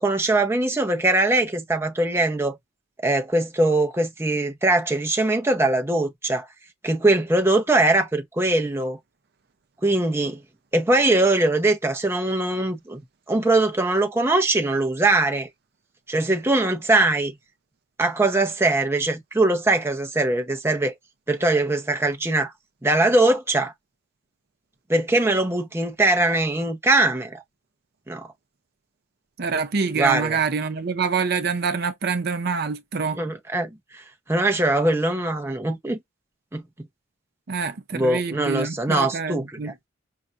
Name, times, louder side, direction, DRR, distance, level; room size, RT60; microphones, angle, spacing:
voice 1, 0.0-2.6 3.0-6.5 6.8-9.0 9.8-10.4 10.7-13.0 13.3-15.5 16.1-17.3 18.0-20.9 21.3-22.5 22.8-23.7 24.9-27.4 28.1-28.3 29.9-30.4 33.2-34.0 34.3-36.0 36.5-36.6 37.9-39.7, right 2 dB, 15° right, 0.7 m, -21 dB
voice 2, 29.4-33.2 37.5-39.7, right 5 dB, 55° right, 0.5 m, -26 dB
5.5 x 2.5 x 2.5 m
head